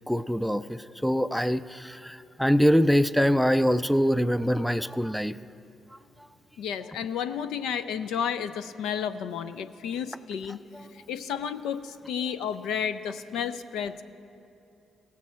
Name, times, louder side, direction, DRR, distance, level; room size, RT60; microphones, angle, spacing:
voice 1, 0.1-5.4 10.7-10.8, equal, ahead, 14 dB, 0.4 m, -24 dB
voice 2, 6.6-10.6 11.1-14.0, left 8 dB, 75° left, 12 dB, 0.4 m, -32 dB
17.5 x 7.2 x 4.3 m, 2.9 s
hypercardioid pair, 45°, 0 cm